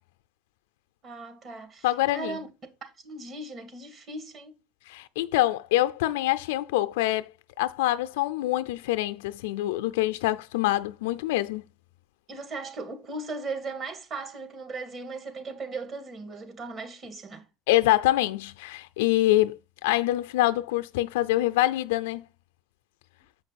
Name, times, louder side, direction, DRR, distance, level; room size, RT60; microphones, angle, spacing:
voice 1, 1.0-2.5 2.8-4.6 12.3-17.5, right 3 dB, 45° right, 2.3 m, -37 dB
voice 2, 1.8-2.4 4.9-7.3 7.6-11.7 17.7-22.2, left 16 dB, 80° left, 0.5 m, -25 dB
7.5 x 5.3 x 4.2 m
supercardioid pair, 85°, 0 cm